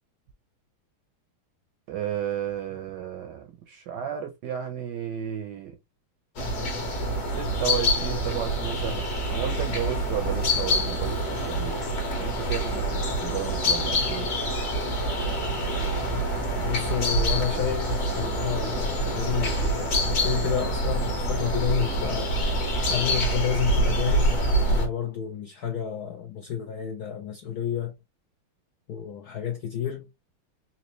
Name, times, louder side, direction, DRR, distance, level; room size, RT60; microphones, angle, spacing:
voice 1, 1.9-5.7 7.3-11.7 12.2-14.3, right 10 dB, 70° right, 1.0 m, -33 dB
sound 1, 6.4-24.9, equal, 50° left, 1.5 m, -26 dB
Subway metro underground, 15.3-23.3, right 5 dB, 90° right, 1.6 m, -40 dB
voice 2, 16.6-22.3 22.9-27.9 28.9-30.1, left 9 dB, 75° left, 0.9 m, -30 dB
4.1 x 2.8 x 3.0 m
omnidirectional pair, 2.4 m